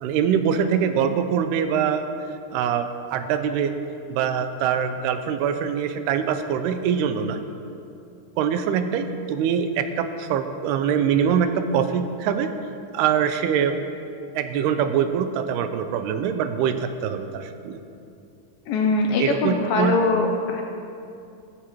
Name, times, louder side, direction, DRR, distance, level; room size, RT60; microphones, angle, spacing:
voice 1, 0.0-2.1 2.5-3.8 4.1-7.4 8.4-12.5 12.9-13.8 14.4-17.8 18.8-18.9 19.2-20.0, right 8 dB, 85° right, 9 dB, 2.6 m, -23 dB
voice 2, 18.7-20.6, left 3 dB, 80° left, 2 dB, 2.1 m, -22 dB
15.0 x 14.5 x 3.1 m, 2.6 s
omnidirectional pair, 4.7 m